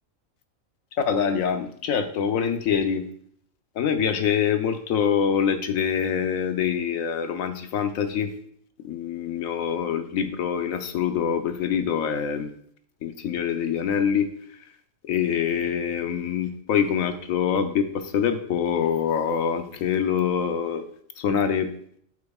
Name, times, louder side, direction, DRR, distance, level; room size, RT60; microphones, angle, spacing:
voice 1, 1.0-3.1 3.7-8.3 8.8-12.5 13.0-14.3 15.0-20.8 21.2-21.7, left 7 dB, 75° left, 8 dB, 1.2 m, -25 dB
8.6 x 7.9 x 2.4 m, 0.63 s
omnidirectional pair, 1.4 m